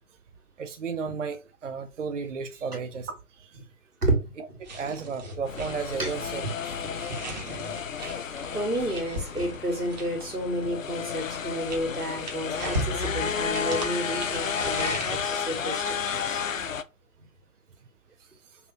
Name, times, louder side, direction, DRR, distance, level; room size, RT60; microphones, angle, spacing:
voice 1, 0.6-3.5 4.4-4.5 4.7-7.1, right 5 dB, 55° right, 0.6 m, -34 dB
voice 2, 4.0-4.6 6.0-6.1 8.5-16.4, right 1 dB, 90° right, 1.9 m, -31 dB
sound 1, 4.6-10.4 11.2-15.2, right 1 dB, 30° right, 1.2 m, -37 dB
sound 2, 5.5-16.8, left 6 dB, 60° left, 0.5 m, -32 dB
5.4 x 2.7 x 2.8 m
figure-of-eight pair, 145°, 45 cm